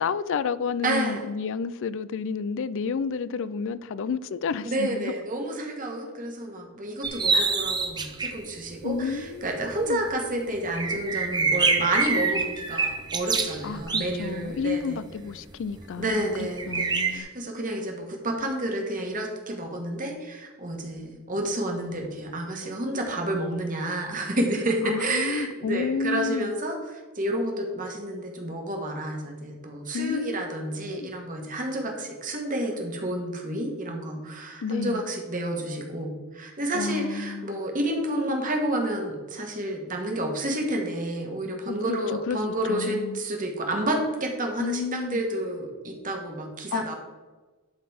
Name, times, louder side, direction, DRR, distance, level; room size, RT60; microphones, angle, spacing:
voice 1, 0.0-5.1 7.3-7.6 8.8-10.0 13.6-17.3 24.8-26.5 29.9-31.1 34.6-35.0 36.7-37.6 41.7-42.4 42.7-43.2 44.6-45.2 46.7-46.9, left 5 dB, 55° left, 0.4 m, -31 dB
voice 2, 0.8-1.2 4.6-15.0 16.0-46.9, right 1 dB, 35° right, 1.5 m, -30 dB
sound 1, 7.0-8.4 8.9-9.0 9.5-9.6 9.7-9.8 10.1-10.2 10.7-14.7 15.5-15.8 16.6-17.2, right 4 dB, 20° right, 0.7 m, -26 dB
11.5 x 4.0 x 5.0 m
head